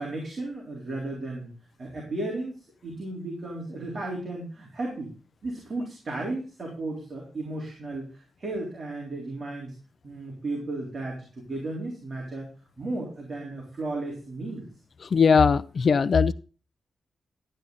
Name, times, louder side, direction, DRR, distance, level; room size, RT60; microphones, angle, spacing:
voice 1, 0.0-1.5 1.8-5.1 5.4-9.7 10.0-12.5 12.8-14.7, right 2 dB, 40° right, 3.7 m, -34 dB
voice 2, 15.1-16.3, left 5 dB, 50° left, 0.6 m, -19 dB
12.5 x 8.9 x 3.9 m
wide cardioid pair, 125°, 0 cm